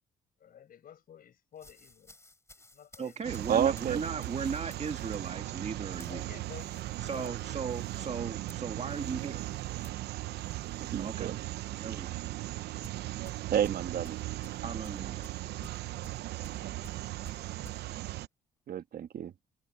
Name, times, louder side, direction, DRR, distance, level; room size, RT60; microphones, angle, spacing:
voice 1, 0.4-2.2 2.6-3.4 6.0-7.5, left 9 dB, 60° left, 5.5 m, -52 dB
sound 1, 1.6-11.2 11.5-11.8 12.8-17.8, left 2 dB, 15° left, 4.6 m, -57 dB
voice 2, 3.0-6.3 7.0-9.5 11.0-11.3 11.8-12.3 14.6-15.3, right 6 dB, 40° right, 1.8 m, -37 dB
sound 2, 3.2-18.3, right 16 dB, 80° right, 0.9 m, -38 dB
voice 3, 3.5-4.0 10.9-11.4 11.9-12.0 13.5-14.2 18.7-19.3, right 9 dB, 60° right, 1.7 m, -30 dB
supercardioid pair, 65°, 17 cm